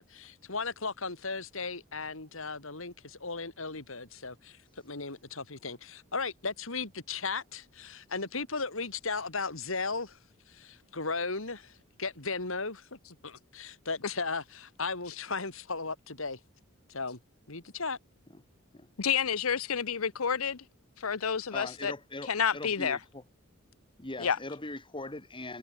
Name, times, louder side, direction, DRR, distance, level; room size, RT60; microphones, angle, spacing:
voice 1, 0.0-4.6 4.8-10.2 10.5-16.4 16.9-17.2 17.5-18.0, left 4 dB, 65° left, 3.6 m, -36 dB
voice 2, 19.0-20.6 21.0-21.9 22.3-23.0 24.2-24.4, left 7 dB, 85° left, 0.8 m, -29 dB
voice 3, 21.5-23.2 24.0-25.6, left 2 dB, 25° left, 3.1 m, -41 dB
head